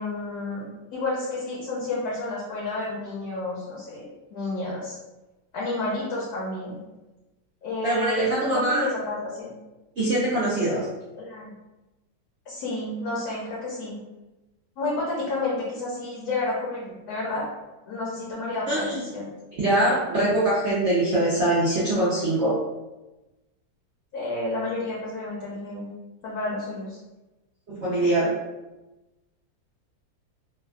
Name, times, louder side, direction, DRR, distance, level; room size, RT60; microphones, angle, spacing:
voice 1, 0.0-4.0 4.3-5.0 5.5-6.8 7.6-9.6 11.1-11.5 12.5-14.0 14.8-17.4 17.9-19.3 24.1-25.9 26.2-27.0, left 2 dB, 65° left, -5 dB, 1.0 m, -30 dB
voice 2, 7.8-8.9 10.0-10.9 18.7-19.0 19.6-22.5 27.7-28.3, right 1 dB, 75° right, -9 dB, 0.6 m, -23 dB
3.2 x 2.2 x 2.3 m, 1.1 s
omnidirectional pair, 2.0 m